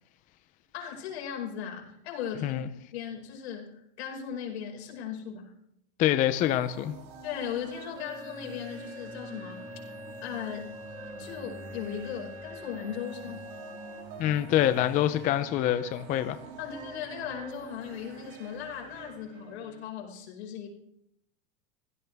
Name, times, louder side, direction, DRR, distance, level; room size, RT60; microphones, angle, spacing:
voice 1, 0.7-2.6 2.9-5.5 7.2-9.6 10.2-10.7 11.2-13.5 16.6-20.7, left 8 dB, 75° left, 5.6 m, -37 dB
voice 2, 6.0-6.9 14.2-16.4, left 12 dB, 25° left, 0.6 m, -25 dB
sound 1, 6.3-19.8, right 4 dB, 50° right, 4.1 m, -46 dB
sound 2, 8.0-14.0, left 2 dB, 10° right, 1.4 m, -45 dB
24.5 x 16.5 x 3.5 m
supercardioid pair, 160°, 32 cm